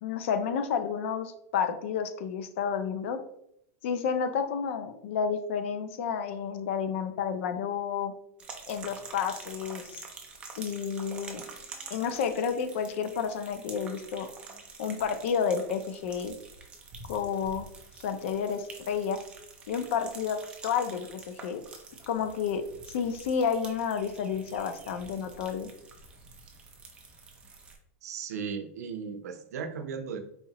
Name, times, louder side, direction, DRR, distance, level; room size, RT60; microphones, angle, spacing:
voice 1, 0.0-3.2 3.8-8.1 8.7-10.0 10.6-11.4 11.9-14.3 14.8-16.4 17.1-17.7 18.0-19.2 19.7-21.6 22.1-22.6 22.9-25.7, left 7 dB, 50° left, 9 dB, 0.5 m, -30 dB
sound 1, 8.4-27.8, right 4 dB, 10° right, 0.5 m, -47 dB
voice 2, 28.0-30.2, right 6 dB, 80° right, 6 dB, 0.6 m, -36 dB
4.2 x 2.8 x 2.8 m, 0.73 s
supercardioid pair, 170°, 8 cm